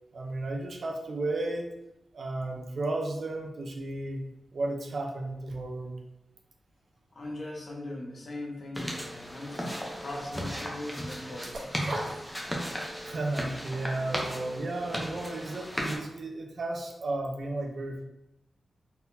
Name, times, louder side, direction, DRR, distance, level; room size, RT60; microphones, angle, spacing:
voice 1, 0.1-1.7 2.1-4.2 4.5-6.0 13.0-18.0, right 2 dB, 55° right, 2 dB, 0.6 m, -33 dB
voice 2, 7.1-11.7, left 1 dB, 45° left, -1 dB, 0.9 m, -40 dB
sound 1, 8.8-16.0, equal, 5° left, 0.7 m, -36 dB
sound 2, 11.4-13.0 13.3-13.4, right 1 dB, 70° right, 1.0 m, -36 dB
4.1 x 4.0 x 2.7 m, 0.88 s
wide cardioid pair, 165°, 0 cm